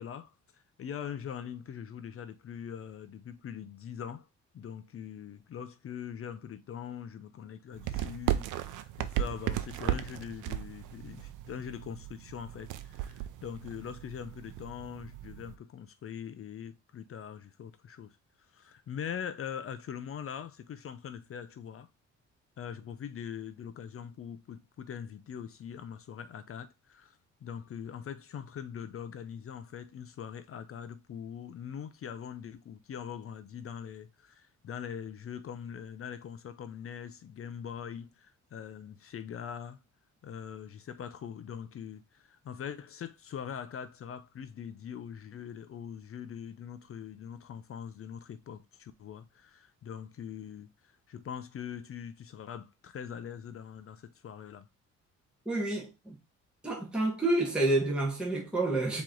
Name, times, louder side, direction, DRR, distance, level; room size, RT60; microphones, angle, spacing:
voice 1, 0.0-4.3 4.5-18.2 18.5-21.9 22.6-39.8 40.2-54.7, left 8 dB, 45° left, 0.6 m, -42 dB
sound 1, 7.7-15.6, right 12 dB, 90° right, 0.6 m, -36 dB
voice 2, 55.4-56.2 56.6-59.0, right 2 dB, 5° right, 1.4 m, -29 dB
4.5 x 3.1 x 3.8 m
cardioid pair, 90°, 30 cm